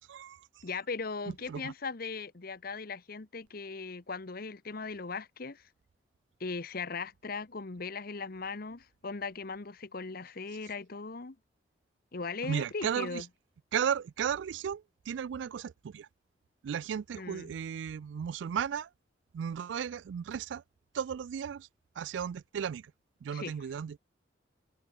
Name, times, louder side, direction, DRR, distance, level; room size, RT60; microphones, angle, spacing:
voice 1, 0.1-0.5 1.5-1.7 12.4-13.2 13.7-16.1 16.6-18.9 19.3-20.6 20.9-21.7 22.0-22.9 23.2-24.0, right 8 dB, 70° right, 0.3 m, -35 dB
voice 2, 0.6-5.7 6.4-11.4 12.1-13.3 17.2-17.5 23.3-23.5, left 4 dB, 50° left, 1.0 m, -38 dB
head